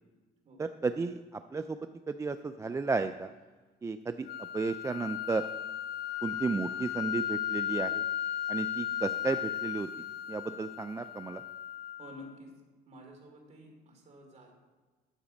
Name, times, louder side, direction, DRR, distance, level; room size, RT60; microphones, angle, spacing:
voice 1, 0.6-3.3 3.8-5.5 6.2-8.0 8.5-9.9 10.3-11.4, right 4 dB, 15° right, 9 dB, 0.3 m, -33 dB
sound 1, 4.3-12.3, left 11 dB, 70° left, 0.7 m, -36 dB
voice 2, 12.0-12.5 12.9-14.5, equal, 40° right, 1 dB, 2.9 m, -50 dB
10.0 x 7.5 x 5.2 m, 1.3 s
cardioid pair, 110°, 17 cm